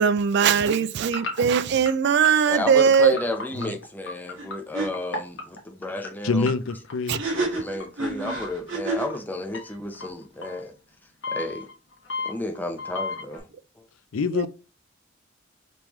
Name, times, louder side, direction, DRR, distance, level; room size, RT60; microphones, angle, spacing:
voice 1, 0.0-3.1 7.1-7.2 14.3-14.5, right 7 dB, 60° right, 0.4 m, -20 dB
sound 1, 1.1-6.1 6.5-7.8 8.3-8.7 9.1-9.2 9.5-10.6 11.2-13.4, left 3 dB, 65° left, 1.3 m, -33 dB
voice 2, 2.5-6.5 7.3-10.7 11.3-11.7 12.2-13.5 13.8-13.9, left 1 dB, 10° left, 0.6 m, -32 dB
sound 2, 4.4-4.5 4.7-4.9 7.1-9.2, right 3 dB, 75° right, 2.1 m, -29 dB
voice 3, 6.2-7.2 14.1-14.5, left 4 dB, 90° left, 0.5 m, -25 dB
5.3 x 3.1 x 3.0 m
head